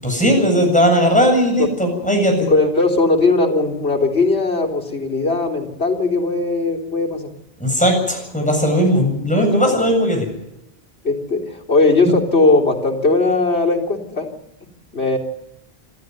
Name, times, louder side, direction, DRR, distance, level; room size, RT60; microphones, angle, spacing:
voice 1, 0.0-2.5 7.6-10.3, equal, 5° left, 2 dB, 7.6 m, -17 dB
voice 2, 2.5-7.3 9.6-9.7 11.0-14.3 14.9-15.2, left 3 dB, 85° left, -1 dB, 4.2 m, -18 dB
26.5 x 13.5 x 9.5 m, 0.87 s
omnidirectional pair, 1.1 m